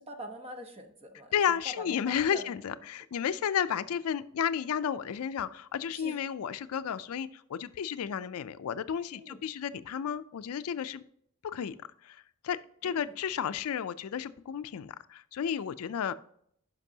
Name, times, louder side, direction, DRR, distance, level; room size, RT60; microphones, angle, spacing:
voice 1, 0.0-2.4 5.9-6.2 9.1-9.4 12.8-13.1, right 1 dB, 30° right, 5 dB, 1.0 m, -44 dB
voice 2, 1.3-11.0 11.4-11.8 12.0-16.1, left 8 dB, 70° left, 14 dB, 0.4 m, -32 dB
11.5 x 5.3 x 2.8 m, 0.68 s
head